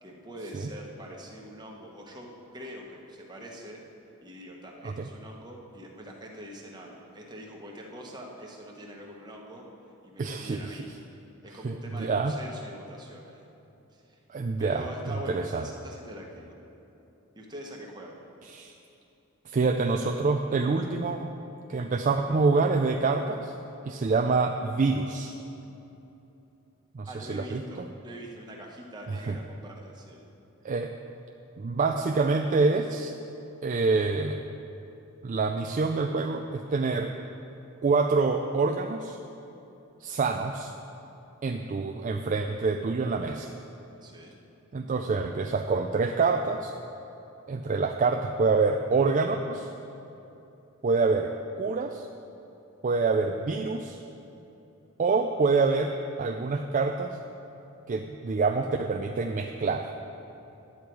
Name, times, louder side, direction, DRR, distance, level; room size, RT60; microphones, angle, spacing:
voice 1, 0.0-2.3 2.5-3.8 4.2-9.7 10.0-10.9 11.4-13.4 14.6-16.6 17.3-18.1 27.0-30.2 44.0-44.3, equal, 20° right, -1 dB, 1.2 m, -43 dB
voice 2, 10.2-10.9 11.6-12.4 14.3-15.6 18.5-18.7 19.5-21.3 21.7-23.5 23.8-25.3 26.9-27.6 29.1-29.4 30.6-30.9 31.6-33.1 33.6-34.4 35.2-37.1 37.8-39.2 40.0-40.7 41.4-43.5 44.7-46.7 47.5-49.7 50.8-52.1 52.8-54.0 55.0-57.2 57.9-59.9, right 4 dB, 35° right, 4 dB, 0.4 m, -26 dB
10.5 x 8.6 x 4.6 m, 2.9 s
head